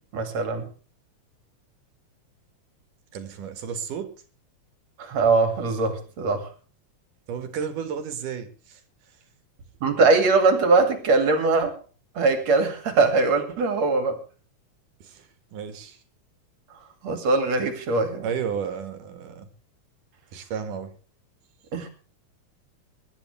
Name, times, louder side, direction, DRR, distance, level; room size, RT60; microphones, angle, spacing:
voice 1, 0.1-0.7 5.0-6.5 9.8-11.7 12.2-14.2 17.0-18.3 21.7-21.9, right 3 dB, 55° right, 6 dB, 3.5 m, -21 dB
voice 2, 3.1-4.2 7.3-8.8 15.0-15.2 15.5-16.0 18.2-19.5 20.3-20.9, right 7 dB, 75° right, 8 dB, 3.2 m, -32 dB
24.0 x 12.0 x 3.4 m, 0.36 s
omnidirectional pair, 3.7 m